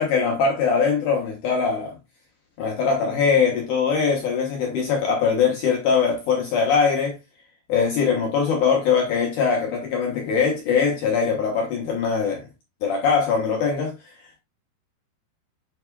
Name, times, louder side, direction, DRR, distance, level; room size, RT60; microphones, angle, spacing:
voice 1, 0.0-2.0 2.6-7.2 7.7-12.5 12.8-13.9, left 5 dB, 70° left, 2.0 m, -22 dB
10.5 x 4.9 x 2.3 m
omnidirectional pair, 5.1 m